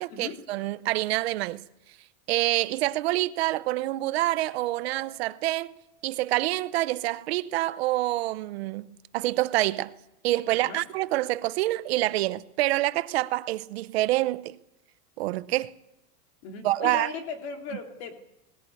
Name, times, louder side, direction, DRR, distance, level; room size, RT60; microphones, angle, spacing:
voice 1, 0.0-1.6 2.3-5.7 6.0-9.9 10.2-14.6 15.2-15.7 16.6-17.1, right 17 dB, 45° right, 0.7 m, -27 dB
Mallet percussion, 4.4-6.8, right 8 dB, 5° right, 2.0 m, -57 dB
voice 2, 16.4-18.2, left 5 dB, 45° left, 3.1 m, -37 dB
20.0 x 18.0 x 8.5 m
supercardioid pair, 175°, 46 cm